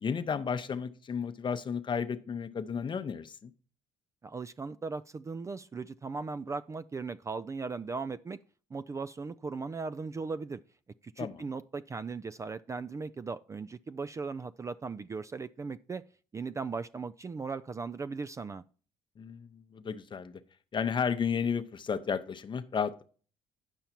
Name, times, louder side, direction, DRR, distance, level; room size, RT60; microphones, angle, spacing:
voice 1, 0.0-3.5 11.2-11.4 19.2-20.4 20.7-23.0, left 6 dB, 35° left, 0.7 m, -33 dB
voice 2, 4.2-8.4 8.7-10.6 11.0-16.0 16.3-18.6, right 4 dB, 25° right, 0.3 m, -38 dB
9.0 x 5.6 x 4.4 m
supercardioid pair, 65°, 13 cm